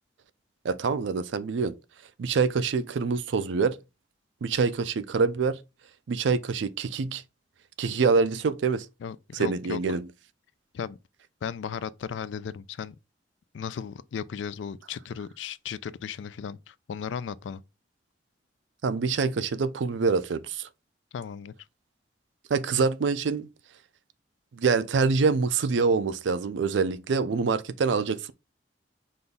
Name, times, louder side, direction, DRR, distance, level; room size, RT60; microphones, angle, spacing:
voice 1, 0.6-1.7 2.2-3.8 4.4-5.6 6.1-7.2 7.8-8.9 9.3-10.1 18.8-20.7 22.5-23.5 24.5-28.3, right 5 dB, 80° right, 0.4 m, -25 dB
voice 2, 9.0-9.8 10.7-11.0 11.4-12.9 13.5-17.6 21.1-21.5, left 7 dB, 80° left, 0.3 m, -36 dB
5.2 x 2.3 x 3.9 m
head